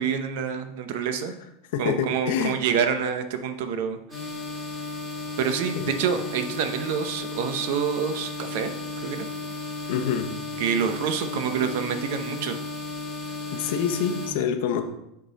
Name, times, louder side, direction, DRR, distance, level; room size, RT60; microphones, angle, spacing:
voice 1, 0.0-1.3 1.8-4.0 5.4-8.7 9.0-9.3 10.6-12.6, right 7 dB, 65° right, 8 dB, 0.8 m, -27 dB
voice 2, 1.7-2.6 5.8-5.9 9.9-10.4 13.5-14.8, left 8 dB, 65° left, 6 dB, 0.8 m, -26 dB
sound 1, 4.1-14.3, left 3 dB, 5° right, 2.3 m, -34 dB
10.0 x 3.8 x 4.1 m, 0.85 s
supercardioid pair, 160°, 0 cm